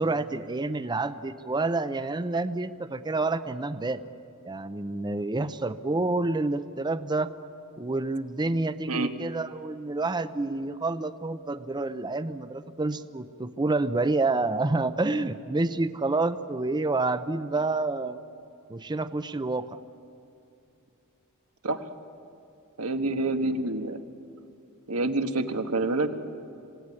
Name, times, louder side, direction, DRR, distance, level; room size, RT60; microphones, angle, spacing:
voice 1, 0.0-4.0 4.4-7.3 7.8-18.2 18.7-19.7, right 2 dB, 20° right, 12 dB, 0.6 m, -28 dB
voice 2, 22.8-24.0 24.9-26.2, right 2 dB, 90° right, 7 dB, 1.5 m, -27 dB
26.5 x 17.5 x 9.8 m, 2.6 s
head